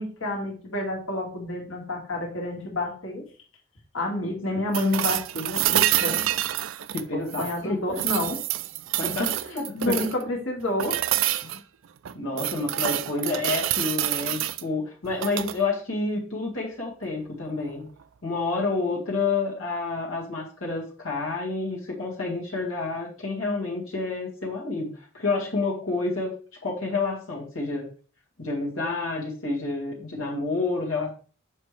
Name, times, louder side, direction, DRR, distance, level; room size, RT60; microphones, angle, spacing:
voice 1, 0.0-3.2 3.9-6.3 7.1-8.4 9.0-9.3 9.7-11.0, left 1 dB, 70° left, 0 dB, 2.1 m, -29 dB
sound 1, 4.7-7.6 7.9-10.2 10.8-11.6 12.0-14.6 15.1-15.6 17.6-17.7, right 13 dB, 70° right, 0.4 m, -27 dB
voice 2, 6.9-7.8 9.0-10.1 11.4-11.6 12.1-17.9 18.2-26.3 26.6-27.9 28.4-31.1, left 3 dB, 90° left, -3 dB, 1.9 m, -29 dB
7.4 x 5.4 x 3.3 m, 0.39 s
head